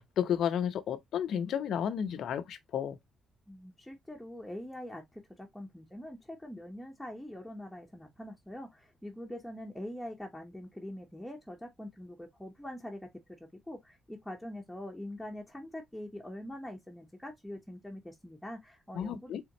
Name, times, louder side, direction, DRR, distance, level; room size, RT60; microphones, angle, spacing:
voice 1, 0.2-3.0 18.9-19.4, left 9 dB, 70° left, 0.7 m, -32 dB
voice 2, 3.5-13.1 13.4-19.3, left 1 dB, 5° left, 1.0 m, -44 dB
4.3 x 3.5 x 2.9 m
cardioid pair, 90°, 0 cm